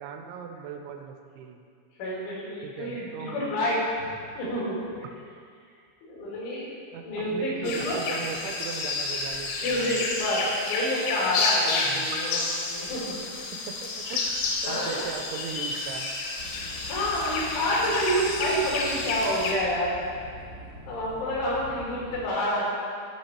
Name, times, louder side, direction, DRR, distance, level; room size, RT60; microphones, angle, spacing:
voice 1, 0.0-1.6 2.6-3.4 6.9-10.0 11.8-12.1 13.5-16.1, right 7 dB, 85° right, 5 dB, 2.9 m, -39 dB
voice 2, 2.0-4.1 4.4-4.8 6.0-6.7 7.0-8.1 9.6-12.4 12.7-13.2 14.6-15.0 16.9-19.9 20.9-22.8, equal, 85° left, -6 dB, 5.0 m, -28 dB
sound 1, 7.6-19.5, left 3 dB, 70° left, 2.4 m, -30 dB
sound 2, 16.4-22.3, right 1 dB, 60° right, 1.0 m, -44 dB
14.5 x 5.7 x 4.4 m, 2.2 s
omnidirectional pair, 5.4 m